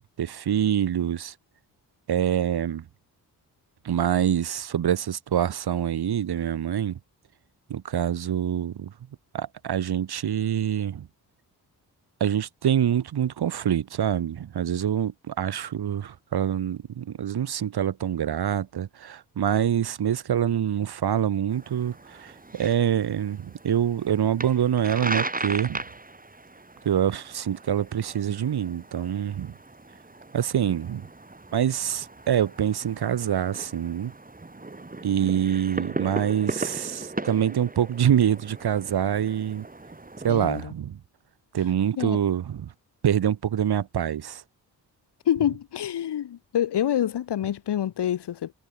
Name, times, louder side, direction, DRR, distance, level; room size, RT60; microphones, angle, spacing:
voice 1, 0.2-1.3 2.1-2.8 3.8-7.0 7.7-8.9 9.3-11.0 12.2-21.9 22.2-25.8 26.8-29.5 30.3-31.0 31.5-34.1 35.0-39.6 40.2-41.0 41.5-42.7 43.0-44.4, right 9 dB, 65° right, 1.5 m, -25 dB
sound 1, 21.5-40.6, right 2 dB, 20° right, 2.7 m, -38 dB
voice 2, 40.3-40.7 42.0-42.2 45.2-48.5, left 10 dB, 75° left, 1.7 m, -27 dB
cardioid pair, 55°, 41 cm